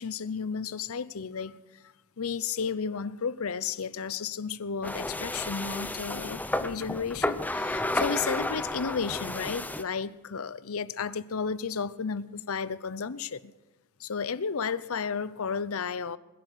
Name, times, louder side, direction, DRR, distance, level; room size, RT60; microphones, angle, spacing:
voice 1, 0.0-1.6 2.2-13.5 14.0-16.2, left 6 dB, 70° left, 0.7 m, -33 dB
sound 1, 4.8-9.8, left 1 dB, 5° left, 0.7 m, -32 dB
21.0 x 10.5 x 6.4 m
head